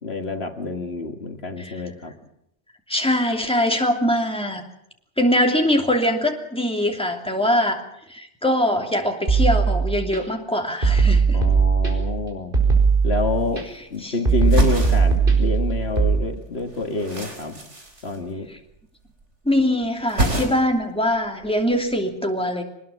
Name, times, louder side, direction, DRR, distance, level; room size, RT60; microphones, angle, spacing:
voice 1, 0.0-2.1 11.3-12.5 13.0-13.6 13.9-17.6 18.0-18.5, left 3 dB, 60° left, 5 dB, 2.1 m, -27 dB
voice 2, 2.9-4.6 5.2-7.8 8.1-11.4 14.0-14.2 18.5-18.6 19.4-22.6, left 1 dB, 5° left, 3 dB, 2.8 m, -22 dB
sound 1, 9.3-10.2 10.8-12.2 12.5-13.6 14.3-16.1, right 5 dB, 50° right, 4.9 m, -18 dB
sound 2, 12.8-12.9 13.1-14.0 14.3-16.0 16.3-18.8 19.0-19.6 19.8-20.9 21.1-21.9, right 1 dB, 80° right, 4.7 m, -28 dB
23.5 x 20.0 x 7.3 m, 0.77 s
omnidirectional pair, 1.2 m